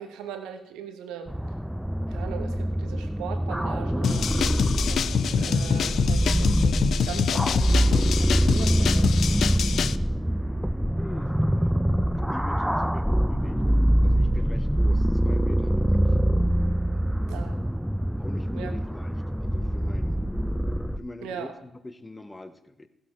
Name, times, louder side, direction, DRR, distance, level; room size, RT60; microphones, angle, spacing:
voice 1, 0.0-1.3 2.1-6.8 7.0-9.4 17.3-17.6 18.5-18.7 21.2-21.5, right 8 dB, 80° right, 7 dB, 1.2 m, -39 dB
sound 1, 1.3-21.0, equal, 5° right, 0.4 m, -24 dB
sound 2, 4.0-10.0, left 8 dB, 65° left, 0.4 m, -26 dB
voice 2, 10.9-11.3 12.3-13.6 14.0-16.1 18.2-20.2 21.0-22.9, left 2 dB, 20° left, 11 dB, 1.1 m, -42 dB
15.5 x 7.7 x 4.6 m, 0.82 s
hypercardioid pair, 45°, 0 cm